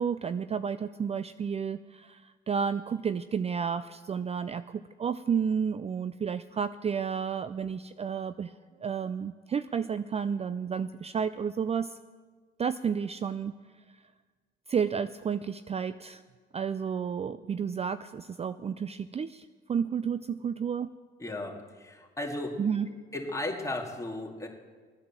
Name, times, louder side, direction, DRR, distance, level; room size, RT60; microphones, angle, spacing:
voice 1, 0.0-8.5 8.8-12.0 12.6-13.5 14.7-16.2 16.5-20.9 22.6-22.9, right 7 dB, 30° right, 13 dB, 0.4 m, -31 dB
voice 2, 21.2-22.6 23.1-24.5, left 2 dB, 15° left, 0 dB, 2.5 m, -35 dB
16.0 x 9.5 x 7.4 m, 1.5 s
cardioid pair, 90°, 20 cm